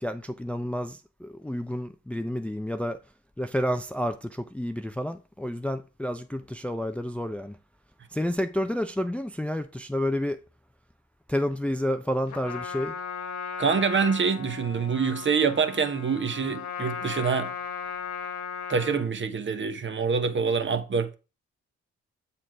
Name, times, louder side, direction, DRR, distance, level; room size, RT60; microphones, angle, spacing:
voice 1, 0.0-3.0 3.4-7.6 8.1-10.4 11.3-12.9, equal, 5° left, 0.5 m, -30 dB
Trumpet, 12.3-19.1, left 6 dB, 65° left, 1.2 m, -36 dB
voice 2, 13.6-17.5 18.7-21.1, right 5 dB, 40° right, 1.0 m, -26 dB
7.5 x 4.4 x 4.6 m
hypercardioid pair, 45°, 31 cm